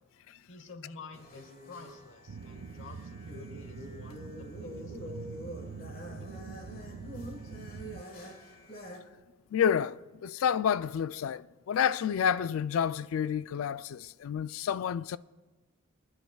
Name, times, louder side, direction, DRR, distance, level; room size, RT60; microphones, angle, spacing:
voice 1, 0.5-5.5 5.8-7.0, left 4 dB, 60° left, 1.1 m, -51 dB
sound 1, 1.1-9.0, equal, 45° left, 1.5 m, -46 dB
sound 2, 2.3-8.0, right 5 dB, 65° right, 0.4 m, -44 dB
voice 2, 9.5-15.2, left 8 dB, 75° left, 0.3 m, -29 dB
27.5 x 10.5 x 2.3 m
head